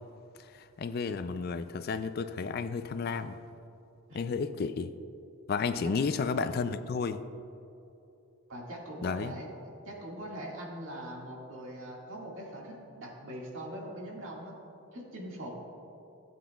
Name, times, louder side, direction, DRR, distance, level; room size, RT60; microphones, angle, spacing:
voice 1, 0.8-3.3 4.1-4.9 5.5-7.2 9.0-9.3, left 5 dB, 45° left, 11 dB, 0.3 m, -32 dB
voice 2, 8.5-9.5 9.9-14.5 14.9-15.6, right 1 dB, 70° right, -3 dB, 1.9 m, -42 dB
15.0 x 8.2 x 2.3 m, 2.8 s
head